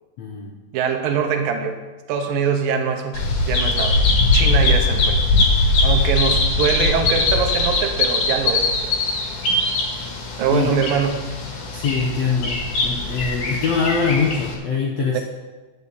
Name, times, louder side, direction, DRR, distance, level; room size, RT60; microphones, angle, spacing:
voice 1, 0.2-0.6 10.5-10.7 11.7-12.5 12.8-15.2, left 5 dB, 75° left, -1 dB, 1.6 m, -22 dB
voice 2, 0.7-1.8 2.1-4.0 4.3-5.2 5.8-9.0 10.4-11.3 15.1-15.2, right 6 dB, 80° right, 5 dB, 2.6 m, -23 dB
Bird vocalization bird call bird song, 3.1-14.5, left 2 dB, 50° left, 2.4 m, -21 dB
10.5 x 5.5 x 8.2 m, 1.2 s
omnidirectional pair, 4.2 m